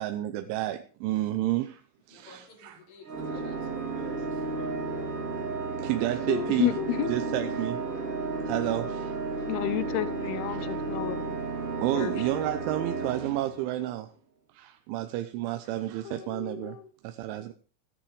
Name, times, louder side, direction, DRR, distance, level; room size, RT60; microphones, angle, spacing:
voice 1, 0.0-1.8 2.1-2.8 5.8-6.7 7.1-8.1 8.5-9.2 10.7-10.8 11.8-14.1 14.5-16.8 17.0-17.5, right 14 dB, 80° right, 3.1 m, -31 dB
voice 2, 2.1-4.7, left 2 dB, 45° left, 3.9 m, -51 dB
Organ, 3.1-14.0, right 3 dB, 35° right, 3.2 m, -33 dB
voice 3, 6.3-7.2 7.9-8.0 9.3-11.4 11.9-12.2 16.1-16.9, left 14 dB, 80° left, 2.4 m, -31 dB
15.0 x 10.5 x 4.9 m
omnidirectional pair, 5.6 m